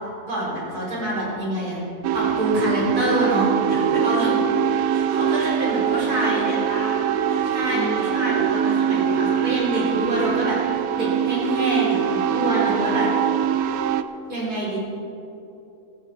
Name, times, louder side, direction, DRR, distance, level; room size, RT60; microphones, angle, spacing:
voice 1, 0.3-1.8 2.1-3.5 4.0-4.4 4.9-6.5 7.4-10.6 10.9-13.1 14.3-14.8, right 1 dB, 90° right, -5 dB, 4.7 m, -26 dB
sound 1, 2.0-14.0, right 8 dB, 70° right, 1.0 m, -23 dB
voice 2, 3.7-4.2 5.3-5.6 5.9-8.1, left 1 dB, 45° left, -4 dB, 3.1 m, -34 dB
15.0 x 14.5 x 4.4 m, 2.7 s
omnidirectional pair, 1.6 m